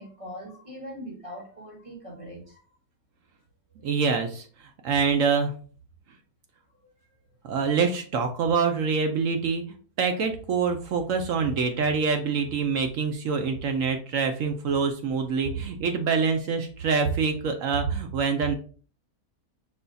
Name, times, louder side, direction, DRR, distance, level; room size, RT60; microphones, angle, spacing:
voice 1, 0.0-2.6, equal, 20° right, -2 dB, 1.4 m, -41 dB
voice 2, 3.8-5.5 7.4-9.6 10.0-18.5, right 5 dB, 65° right, 5 dB, 0.9 m, -25 dB
5.5 x 2.3 x 3.9 m, 0.41 s
omnidirectional pair, 1.6 m